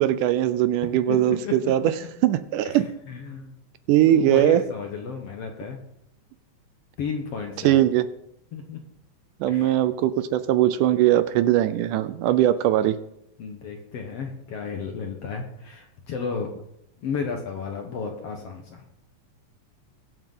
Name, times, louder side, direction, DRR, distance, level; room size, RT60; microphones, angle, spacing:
voice 1, 0.0-1.8 2.2-2.9 3.9-4.6 7.6-8.1 9.4-13.0, right 13 dB, 80° right, 13 dB, 1.9 m, -20 dB
voice 2, 0.9-1.7 2.6-2.8 3.1-3.5 4.1-5.8 7.0-7.8 8.5-8.8 9.5-9.8 13.4-16.5 17.0-18.8, left 5 dB, 60° left, 3 dB, 1.7 m, -33 dB
21.5 x 8.0 x 3.8 m, 0.79 s
omnidirectional pair, 4.1 m